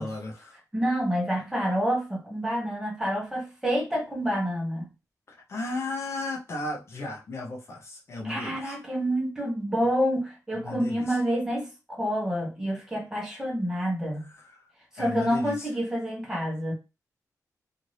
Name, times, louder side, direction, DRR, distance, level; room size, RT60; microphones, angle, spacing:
voice 1, 0.0-0.6 5.3-8.8 10.6-11.2 14.2-14.7 15.0-15.7, left 2 dB, 45° left, 0.7 m, -35 dB
voice 2, 0.7-4.9 8.2-14.3 14.9-16.7, equal, 10° right, 1.0 m, -28 dB
2.7 x 2.5 x 3.2 m
wide cardioid pair, 170°, 6 cm